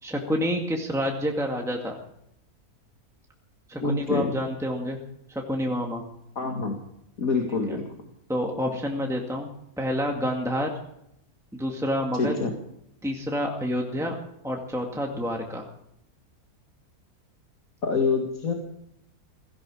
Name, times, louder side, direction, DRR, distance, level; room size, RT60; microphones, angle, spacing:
voice 1, 0.0-2.0 3.7-5.0 5.3-6.0 7.7-7.8 8.3-9.5 9.8-10.7 11.5-12.3 13.0-14.2 14.4-15.7, equal, ahead, 0 dB, 2.1 m, -28 dB
voice 2, 3.8-4.3 6.4-6.8 7.2-7.9 12.1-12.5 17.8-18.5, left 4 dB, 60° left, 2 dB, 2.4 m, -26 dB
17.5 x 17.0 x 5.0 m, 0.78 s
omnidirectional pair, 1.6 m